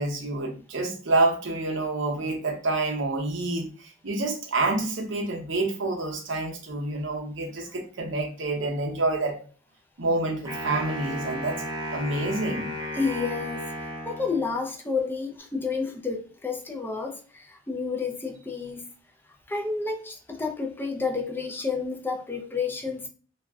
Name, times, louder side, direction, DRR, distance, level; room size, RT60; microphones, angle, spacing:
voice 1, 0.0-9.4 10.0-11.6 11.9-12.7, right 2 dB, 65° right, 0.7 m, -28 dB
Wind instrument woodwind instrument, 10.5-14.7, equal, 20° right, 0.8 m, -34 dB
voice 2, 12.9-18.9 19.5-23.1, left 4 dB, 10° left, 0.4 m, -30 dB
2.3 x 2.1 x 3.4 m
head